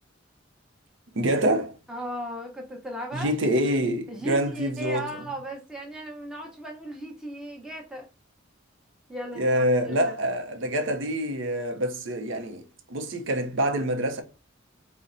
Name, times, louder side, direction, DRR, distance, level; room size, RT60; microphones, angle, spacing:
voice 1, 1.2-1.7 3.1-5.1 9.4-12.6 12.9-14.2, right 1 dB, 65° right, 0.6 m, -26 dB
voice 2, 1.9-3.3 4.1-8.1 9.1-10.1, right 1 dB, 5° right, 0.8 m, -36 dB
4.2 x 2.1 x 3.8 m
head